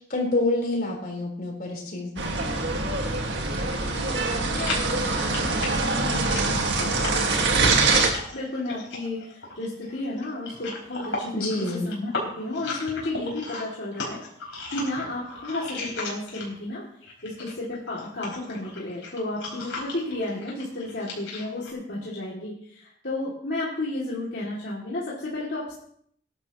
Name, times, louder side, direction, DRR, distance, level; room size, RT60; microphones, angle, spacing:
voice 1, 0.1-2.4 11.3-11.9, left 2 dB, 50° left, -1 dB, 4.1 m, -27 dB
sound 1, 2.2-8.1, right 3 dB, 70° right, 1.9 m, -24 dB
voice 2, 3.9-7.3 8.3-12.1 12.4-14.2 14.7-16.9 17.2-25.7, left 2 dB, 65° left, -6 dB, 2.7 m, -33 dB
sound 2, 4.5-16.7 17.0-21.7, left 3 dB, 85° left, 4.7 m, -36 dB
19.5 x 11.5 x 3.1 m, 0.67 s
head